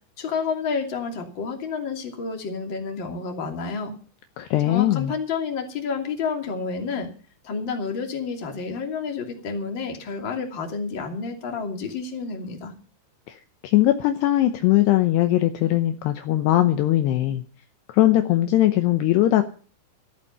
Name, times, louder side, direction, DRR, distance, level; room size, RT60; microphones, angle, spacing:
voice 1, 0.2-3.9 4.7-7.1 7.4-12.7, left 5 dB, 30° left, 2 dB, 2.4 m, -30 dB
voice 2, 4.4-5.1 13.3-17.4 17.9-19.4, left 14 dB, 85° left, 7 dB, 2.4 m, -20 dB
14.0 x 13.5 x 5.5 m, 0.40 s
omnidirectional pair, 6.0 m